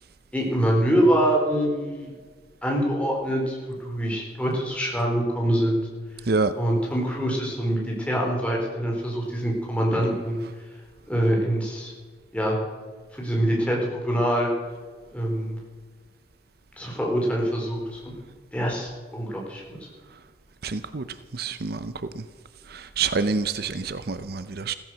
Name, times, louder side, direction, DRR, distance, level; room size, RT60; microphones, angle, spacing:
voice 1, 0.3-2.1 2.6-5.8 6.5-10.4 11.1-11.9 12.3-12.6 13.1-14.5 15.1-15.6 16.8-18.1 18.5-19.8, equal, 5° left, -2 dB, 4.2 m, -25 dB
voice 2, 20.6-21.0 21.4-21.9 23.0-24.7, right 4 dB, 60° right, 12 dB, 0.7 m, -26 dB
16.0 x 14.5 x 6.2 m, 1.5 s
head